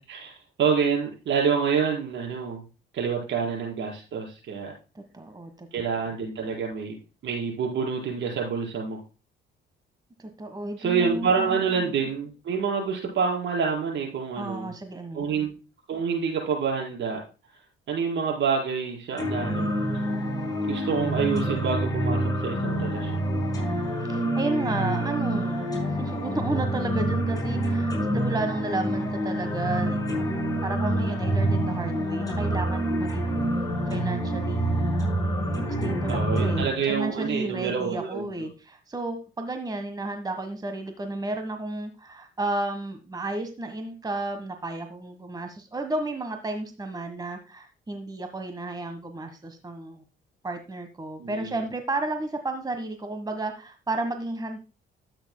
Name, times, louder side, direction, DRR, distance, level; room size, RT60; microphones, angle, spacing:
voice 1, 0.0-2.6 2.9-4.7 5.7-7.0 7.2-9.0 10.8-14.7 15.1-15.5 15.9-17.2 17.9-19.7 20.6-23.1 36.1-38.3 51.2-51.6, right 6 dB, 70° right, -2 dB, 5.1 m, -27 dB
voice 2, 4.9-5.7 10.2-11.9 14.3-15.4 24.0-25.7 26.0-33.4 33.9-34.9 35.8-50.0 50.4-54.6, right 2 dB, 20° right, 6 dB, 1.3 m, -32 dB
sound 1, 19.2-36.6, right 1 dB, 20° left, 5.6 m, -27 dB
13.0 x 8.9 x 2.2 m, 0.33 s
cardioid pair, 90°, 20 cm